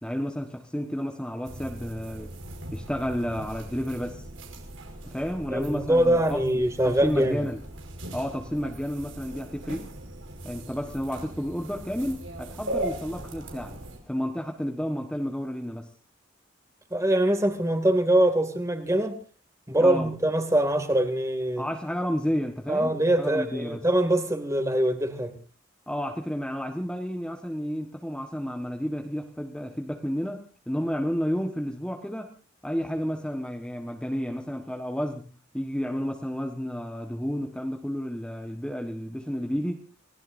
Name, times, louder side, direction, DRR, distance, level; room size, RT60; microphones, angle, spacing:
voice 1, 0.0-2.4 2.7-4.3 5.0-7.6 8.1-9.9 10.4-13.8 14.1-15.9 19.8-20.1 21.6-23.8 25.9-32.3 32.6-35.2 35.5-39.8, equal, 5° left, 1.3 m, -31 dB
sound 1, 1.4-14.0, right 1 dB, 85° right, 5.2 m, -39 dB
voice 2, 5.5-7.5 16.9-19.1 19.7-21.6 22.7-25.3, right 1 dB, 15° right, 2.4 m, -23 dB
29.5 x 18.0 x 2.7 m
head